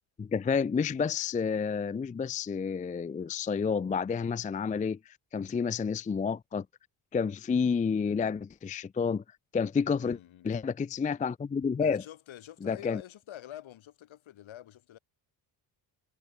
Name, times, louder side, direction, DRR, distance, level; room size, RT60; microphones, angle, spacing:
voice 1, 0.2-6.7 7.1-9.2 9.5-10.2 10.4-12.0 12.6-13.0, left 6 dB, 15° left, 0.4 m, -30 dB
voice 2, 10.0-10.6 11.8-15.0, left 12 dB, 65° left, 4.8 m, -47 dB
supercardioid pair, 70°, 50 cm